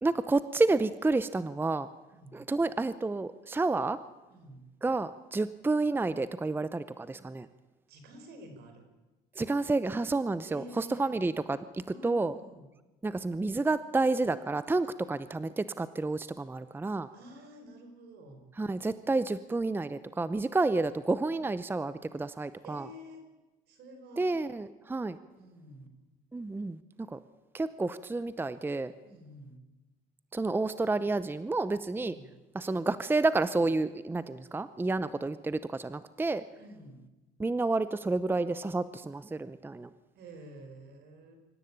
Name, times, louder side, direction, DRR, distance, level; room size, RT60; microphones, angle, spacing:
voice 1, 0.0-1.9 2.3-4.0 4.8-7.5 9.4-12.3 13.0-17.1 18.6-22.9 24.2-25.2 26.3-27.2 27.5-28.9 30.3-32.1 32.5-36.4 37.4-39.9, right 3 dB, 10° right, 14 dB, 0.7 m, -30 dB
voice 2, 2.1-2.5 4.3-4.7 7.9-8.9 10.4-11.2 11.9-12.7 17.1-18.4 22.3-23.3 23.7-24.4 25.3-25.9 29.0-29.6 31.9-32.3 36.6-37.0 40.2-41.4, right 1 dB, 75° right, 6 dB, 5.2 m, -49 dB
24.5 x 14.0 x 8.7 m, 1.1 s
cardioid pair, 110°, 17 cm